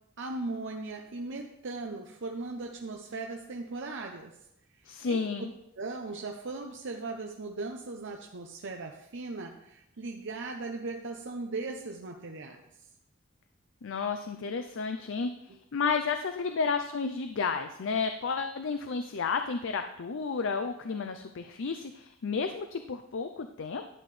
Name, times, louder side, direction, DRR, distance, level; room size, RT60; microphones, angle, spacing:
voice 1, 0.2-4.3 4.8-5.3 5.8-12.6, right 3 dB, 60° right, 2 dB, 0.7 m, -38 dB
voice 2, 4.9-5.5 13.8-15.3 15.7-23.9, left 5 dB, 65° left, 7 dB, 0.5 m, -32 dB
11.5 x 8.9 x 3.3 m, 0.83 s
head